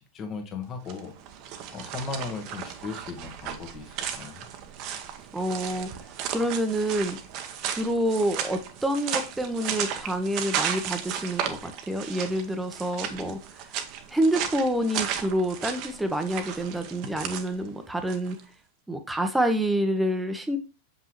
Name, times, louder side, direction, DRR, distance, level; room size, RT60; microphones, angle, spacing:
voice 1, 0.1-1.1 1.7-4.5, left 5 dB, 30° left, 4 dB, 1.5 m, -37 dB
sound 1, 0.8-18.4, right 9 dB, 40° right, 1.0 m, -35 dB
voice 2, 5.3-5.9 6.3-7.2 7.7-13.4 14.1-18.4 18.9-20.6, right 1 dB, 5° right, 7 dB, 1.0 m, -27 dB
7.3 x 5.5 x 3.1 m, 0.31 s
figure-of-eight pair, 90°, 0 cm